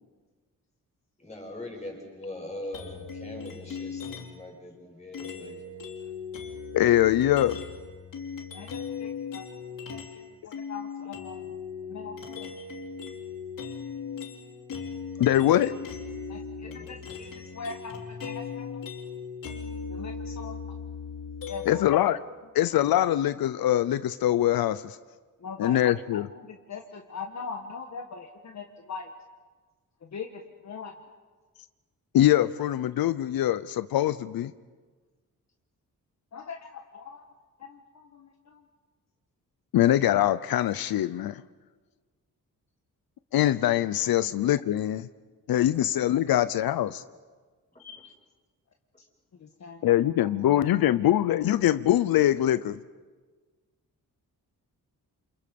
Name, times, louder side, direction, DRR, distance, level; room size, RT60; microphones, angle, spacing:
voice 1, 1.2-5.6 16.6-17.0 45.8-45.9 47.7-47.8 49.4-49.5, left 1 dB, 20° left, 0 dB, 6.5 m, -42 dB
sound 1, 2.7-4.5 5.1-10.2 10.5-21.9, left 6 dB, 65° left, 3.0 m, -38 dB
voice 2, 6.7-7.6 15.2-15.7 21.7-22.2 22.5-25.0 25.6-26.3 32.1-34.5 39.7-41.4 43.3-45.1 45.5-47.0 49.8-52.8, left 12 dB, 85° left, 14 dB, 0.7 m, -23 dB
voice 3, 8.5-9.5 9.9-10.0 10.4-11.6 11.9-12.5 16.3-18.8 19.9-20.6 21.5-21.8 25.4-25.8 26.1-29.1 30.1-30.9 36.3-37.3 37.6-37.8 38.1-38.6 44.2-44.3 47.8-48.1 49.4-49.9 50.2-50.7, left 5 dB, 50° left, 3 dB, 1.5 m, -41 dB
28.5 x 28.0 x 5.3 m, 1.4 s
wide cardioid pair, 155°, 35 cm